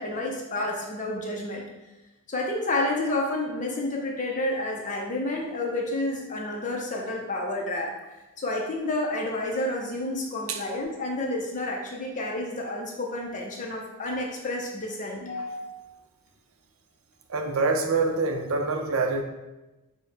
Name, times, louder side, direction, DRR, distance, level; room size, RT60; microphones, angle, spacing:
voice 1, 0.0-1.6 2.3-7.9 8.4-15.9, left 2 dB, 35° left, -1 dB, 0.6 m, -30 dB
voice 2, 17.3-19.2, right 3 dB, 65° right, 4 dB, 0.5 m, -25 dB
4.4 x 2.1 x 4.5 m, 1.1 s
head